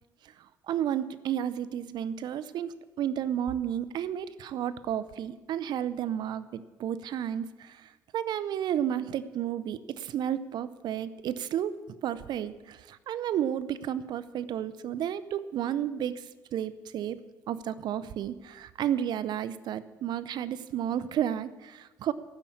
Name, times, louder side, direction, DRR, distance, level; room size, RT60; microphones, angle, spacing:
voice 1, 0.7-11.7 12.0-17.2 17.5-22.1, right 10 dB, 65° right, 15 dB, 0.6 m, -32 dB
14.0 x 7.1 x 8.6 m, 1.2 s
cardioid pair, 90°, 8 cm